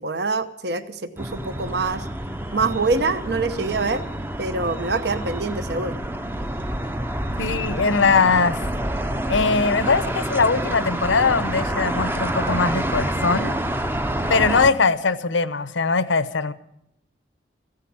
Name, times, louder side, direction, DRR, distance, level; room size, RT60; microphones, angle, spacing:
voice 1, 0.0-2.1 2.5-4.0 4.4-6.0, right 3 dB, 60° right, 11 dB, 0.9 m, -25 dB
sound 1, 1.2-14.7, right 1 dB, 10° right, 0.6 m, -27 dB
voice 2, 7.4-8.6 9.3-13.6 14.3-16.5, left 4 dB, 90° left, 15 dB, 0.9 m, -21 dB
15.0 x 10.0 x 8.7 m, 0.78 s
head